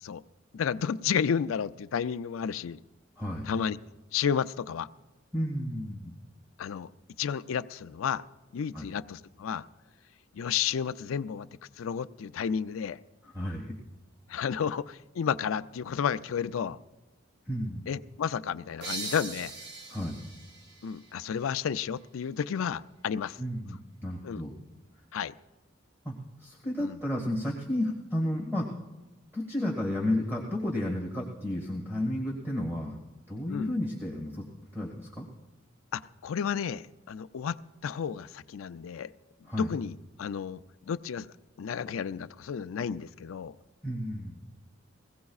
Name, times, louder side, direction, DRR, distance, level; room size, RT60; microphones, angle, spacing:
voice 1, 0.5-2.8 3.4-3.8 4.1-4.9 6.6-6.9 7.2-8.2 8.5-9.7 10.3-11.5 11.8-13.0 14.3-16.8 17.9-19.5 20.8-23.4 24.2-24.4 25.1-25.3 26.8-27.0 33.5-33.7 35.9-37.6 37.8-39.1 39.6-40.6 40.9-41.3 41.6-43.6, left 7 dB, 85° left, 13 dB, 0.4 m, -32 dB
voice 2, 3.2-3.5 5.3-6.2 8.7-8.9 13.2-13.7 17.5-17.9 19.9-20.2 23.4-24.6 26.0-28.7 29.3-33.0 33.3-34.5 34.7-35.3 39.5-39.7 43.8-44.4, left 1 dB, 15° right, -4 dB, 1.8 m, -32 dB
sound 1, 18.8-22.2, right 3 dB, 60° right, 0.8 m, -42 dB
22.0 x 16.5 x 2.4 m, 1.1 s
head